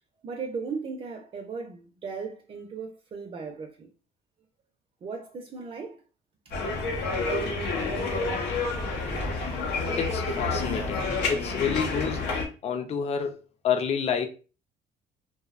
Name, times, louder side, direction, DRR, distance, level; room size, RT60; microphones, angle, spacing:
voice 1, 0.2-3.9 5.0-6.0 6.5-6.6, right 5 dB, 35° right, 0.4 m, -37 dB
sound 1, 6.5-12.5, left 3 dB, 80° left, 0.6 m, -29 dB
voice 2, 10.0-12.3 12.6-14.3, left 7 dB, 40° left, 0.4 m, -29 dB
2.6 x 2.0 x 2.4 m
cardioid pair, 110°, 17 cm